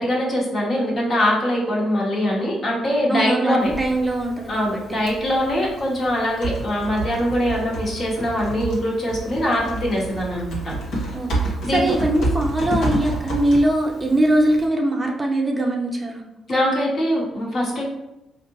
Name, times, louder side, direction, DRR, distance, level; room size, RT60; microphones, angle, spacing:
voice 1, 0.0-3.7 4.5-10.7 11.6-11.8 16.5-17.8, equal, 50° left, -3 dB, 1.4 m, -22 dB
voice 2, 3.1-4.7 11.1-16.2, right 1 dB, 20° right, 0 dB, 0.5 m, -21 dB
Typing, 3.6-14.7, right 2 dB, 75° left, 1.1 m, -30 dB
4.3 x 2.5 x 2.9 m, 0.93 s
cardioid pair, 90°, 0 cm